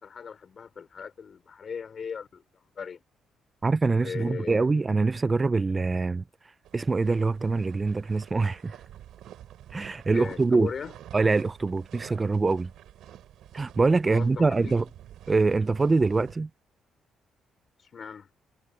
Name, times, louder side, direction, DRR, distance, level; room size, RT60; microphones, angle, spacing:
voice 1, 0.0-3.0 3.9-4.7 10.1-10.9 14.0-14.8 17.8-18.3, left 6 dB, 45° left, 4.9 m, -38 dB
voice 2, 3.6-6.2 6.7-8.8 9.7-10.7 11.1-12.7 13.5-14.8 15.3-16.5, right 3 dB, 25° right, 0.4 m, -24 dB
sound 1, 6.6-16.4, right 12 dB, 80° right, 6.8 m, -49 dB
cardioid pair, 90°, 0 cm